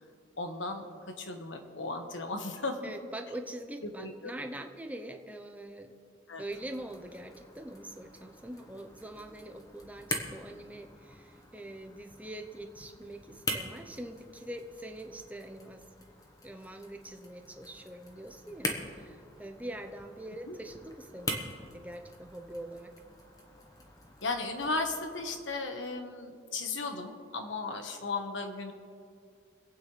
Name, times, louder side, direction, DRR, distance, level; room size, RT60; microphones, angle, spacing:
voice 1, 0.4-2.9 4.0-4.3 6.3-6.4 20.5-20.6 24.2-28.7, left 3 dB, 85° left, 5 dB, 1.4 m, -35 dB
voice 2, 2.8-5.9 6.4-15.8 16.4-21.4 21.7-22.9, right 1 dB, 10° right, 5 dB, 0.7 m, -43 dB
sound 1, 6.5-25.4, left 1 dB, 20° left, 1.2 m, -43 dB
25.5 x 9.0 x 3.3 m, 2.4 s
head